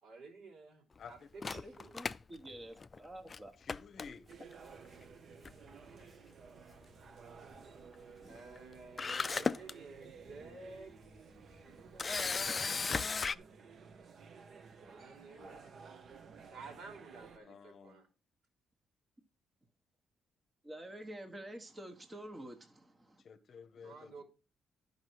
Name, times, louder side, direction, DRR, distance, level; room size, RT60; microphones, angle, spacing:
voice 1, 0.0-2.0 8.3-10.9 11.5-12.4 14.8-15.7 16.4-18.1 23.8-24.2, right 3 dB, 70° right, 3.4 m, -53 dB
voice 2, 1.0-1.3 3.6-4.3 15.3-15.6 17.4-18.0 23.3-24.1, left 6 dB, 50° left, 0.8 m, -52 dB
Camera, 1.4-3.0 3.3-3.4 3.7-4.5 5.4-5.7 6.0-6.1 8.6-8.7 9.0-9.7 10.3-10.4 12.0-13.4, left 4 dB, 30° left, 0.3 m, -35 dB
voice 3, 1.5-3.5 8.2-8.4 20.6-22.6 23.8-23.9, right 1 dB, 20° right, 1.1 m, -48 dB
sound 1, 4.3-17.4, right 5 dB, 50° right, 0.9 m, -55 dB
11.5 x 5.4 x 4.6 m
cardioid pair, 125°, 0 cm